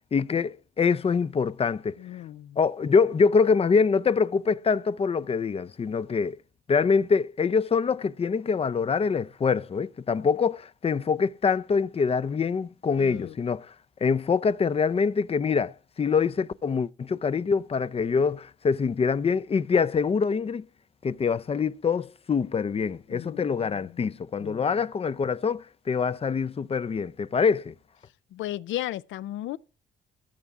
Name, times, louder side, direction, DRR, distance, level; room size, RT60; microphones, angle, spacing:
voice 1, 0.1-2.0 2.6-6.4 6.7-13.7 14.0-20.6 21.0-27.7, left 5 dB, 30° left, 0.5 m, -25 dB
voice 2, 2.0-2.6 13.0-13.3 23.1-24.0 24.4-24.8 28.3-29.6, left 14 dB, 75° left, 0.6 m, -36 dB
18.0 x 7.0 x 3.6 m
cardioid pair, 90°, 20 cm